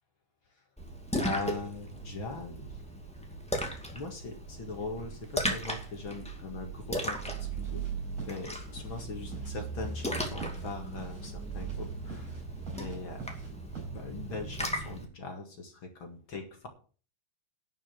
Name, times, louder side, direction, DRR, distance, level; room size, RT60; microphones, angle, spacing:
Splash splatter, 0.8-15.1, right 1 dB, 5° left, 1.4 m, -37 dB
voice 1, 1.2-2.8 3.9-7.9 8.3-12.4 12.7-13.3 13.9-16.7, left 3 dB, 45° left, 4 dB, 2.2 m, -41 dB
sound 1, 7.1-13.9, right 5 dB, 45° right, 5.6 m, -49 dB
11.0 x 6.2 x 7.7 m, 0.39 s
omnidirectional pair, 3.8 m